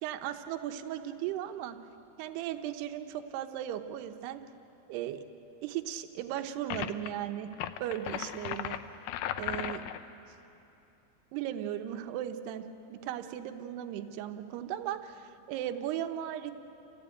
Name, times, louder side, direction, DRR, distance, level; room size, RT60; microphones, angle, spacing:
voice 1, 0.0-1.8 2.2-4.4 4.9-5.2 5.6-7.5 7.8-8.8 9.4-9.9 11.3-16.5, right 11 dB, 85° right, 7 dB, 2.9 m, -36 dB
sound 1, 6.7-7.1 7.5-10.0, left 11 dB, 80° left, 2.4 m, -36 dB
28.5 x 16.0 x 9.0 m, 2.9 s
omnidirectional pair, 4.7 m